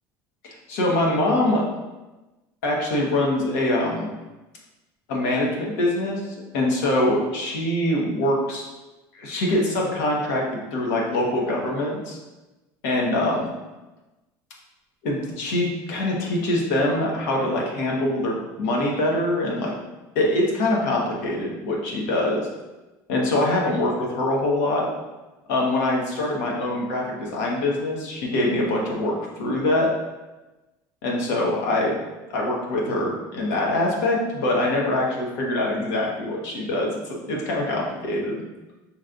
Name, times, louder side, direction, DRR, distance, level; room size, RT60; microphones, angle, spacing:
voice 1, 0.4-1.7 2.6-4.1 5.1-8.7 9.1-10.4 10.7-12.2 12.8-13.5 15.0-19.8 20.1-22.5 23.1-24.9 25.5-29.9 31.0-32.0 32.3-38.3, left 1 dB, 85° left, -2 dB, 1.1 m, -24 dB
5.6 x 3.1 x 2.5 m, 1.1 s
cardioid pair, 140°, 9 cm